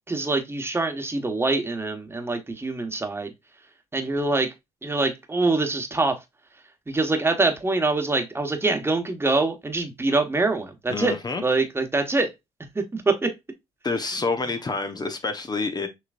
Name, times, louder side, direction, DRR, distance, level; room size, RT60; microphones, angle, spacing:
voice 1, 0.1-3.3 3.9-4.5 4.8-6.2 6.9-11.2 11.4-12.3 12.7-13.3, right 3 dB, 20° right, 1.2 m, -24 dB
voice 2, 10.9-11.4 13.8-15.9, left 3 dB, 30° left, 0.9 m, -28 dB
6.0 x 3.0 x 2.5 m
supercardioid pair, 60°, 13 cm